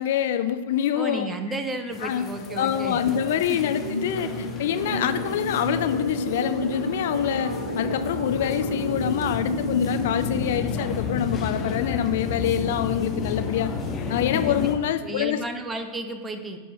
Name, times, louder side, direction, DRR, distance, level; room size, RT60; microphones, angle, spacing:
voice 1, 0.0-1.3 2.0-2.3 2.6-13.7 14.1-15.4, left 10 dB, 55° left, 10 dB, 0.4 m, -26 dB
voice 2, 0.9-3.6 14.4-14.7 15.0-16.6, right 2 dB, 15° right, 8 dB, 0.9 m, -33 dB
sound 1, 1.9-14.7, left 4 dB, 25° left, 1.3 m, -32 dB
sound 2, 2.5-10.5, left 1 dB, 90° right, 0.9 m, -31 dB
13.5 x 5.0 x 3.6 m, 1.4 s
figure-of-eight pair, 90°, 0 cm